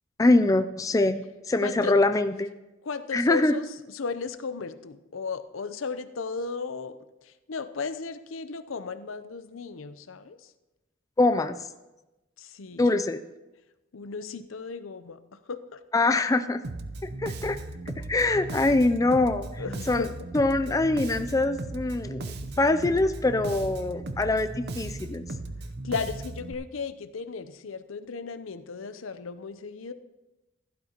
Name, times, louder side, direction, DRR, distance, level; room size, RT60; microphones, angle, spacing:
voice 1, 0.2-2.5 3.1-3.5 11.2-11.6 12.8-13.2 15.9-16.6 17.2-17.6 18.0-20.0 20.3-22.3 22.6-25.2, left 2 dB, 15° left, 9 dB, 0.3 m, -24 dB
voice 2, 1.6-1.9 2.8-7.0 7.2-10.5 12.4-12.9 13.9-15.8 19.6-20.1 25.8-29.9, left 4 dB, 75° left, 11 dB, 0.6 m, -35 dB
Bass guitar, 16.6-26.5, right 2 dB, 55° right, 0.7 m, -37 dB
15.5 x 12.0 x 2.9 m, 1.0 s
head